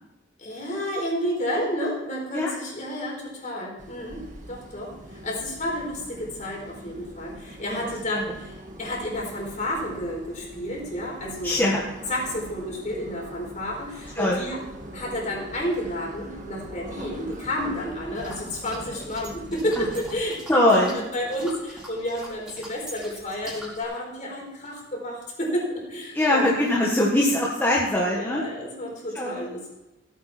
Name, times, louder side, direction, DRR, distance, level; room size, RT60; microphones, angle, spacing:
voice 1, 0.4-4.2 4.5-11.7 12.1-14.6 14.9-26.5 26.7-26.9 28.1-29.7, equal, 40° left, -2 dB, 4.4 m, -31 dB
sound 1, 3.8-20.2, right 1 dB, 45° right, 1.7 m, -42 dB
voice 2, 11.4-11.8 14.2-14.4 19.8-19.9 20.5-21.0 26.1-28.4 29.1-29.5, left 1 dB, 10° left, -4 dB, 1.5 m, -22 dB
sound 2, 18.1-23.8, equal, 5° right, 4.5 m, -43 dB
16.0 x 9.3 x 4.4 m, 1.0 s
head